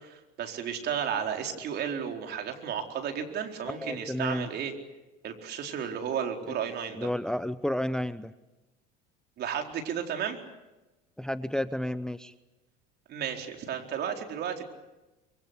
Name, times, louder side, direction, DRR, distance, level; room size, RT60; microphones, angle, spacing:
voice 1, 0.0-4.7 5.2-7.1 9.4-10.4 13.1-14.7, right 8 dB, 55° right, 4 dB, 4.3 m, -33 dB
voice 2, 3.7-4.5 7.0-8.3 11.2-12.3, left 1 dB, 5° left, 14 dB, 0.8 m, -31 dB
25.0 x 23.5 x 8.3 m, 1.1 s
hypercardioid pair, 80°, 21 cm